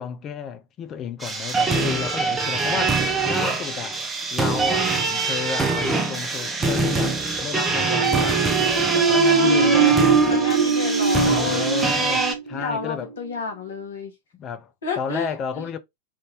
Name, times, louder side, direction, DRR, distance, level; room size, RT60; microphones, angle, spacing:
voice 1, 0.0-4.0 4.3-8.4 8.9-10.0 11.2-13.1 14.3-14.7 15.0-15.8, left 7 dB, 30° left, 0.5 m, -32 dB
sound 1, 1.2-12.3, right 3 dB, 15° right, 0.7 m, -23 dB
sound 2, 7.7-13.3, right 4 dB, 70° right, 0.5 m, -23 dB
voice 2, 9.1-11.9 12.5-14.1 14.8-15.6, left 4 dB, 65° left, 1.2 m, -31 dB
3.6 x 2.6 x 2.8 m
figure-of-eight pair, 90°, 0 cm